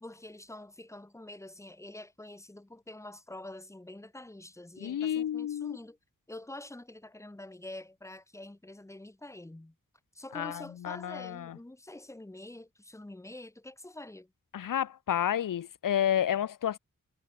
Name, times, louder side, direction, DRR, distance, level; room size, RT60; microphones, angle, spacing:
voice 1, 0.0-6.0 6.3-9.8 10.1-14.3, left 1 dB, 10° left, 0.9 m, -46 dB
voice 2, 4.8-5.8 10.3-11.5 14.5-16.8, left 10 dB, 70° left, 0.6 m, -30 dB
wide cardioid pair, 115°, 34 cm